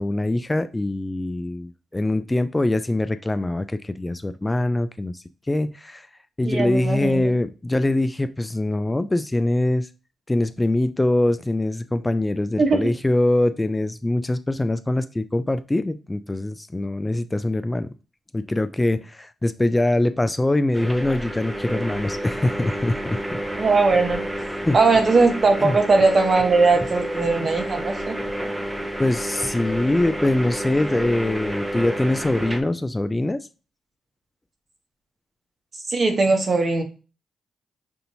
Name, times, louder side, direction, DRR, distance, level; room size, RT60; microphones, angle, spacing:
voice 1, 0.0-6.1 6.4-9.9 10.3-17.9 18.3-23.2 24.6-24.8 25.6-25.8 29.0-33.5, left 1 dB, 20° left, 11 dB, 0.3 m, -23 dB
voice 2, 6.5-7.3 12.6-12.9 23.6-24.2 24.7-28.2 35.9-36.8, right 3 dB, 50° right, 4 dB, 1.1 m, -19 dB
sound 1, 20.7-32.6, right 1 dB, 15° right, 0.8 m, -30 dB
5.6 x 2.6 x 2.7 m, 0.34 s
supercardioid pair, 50°, 0 cm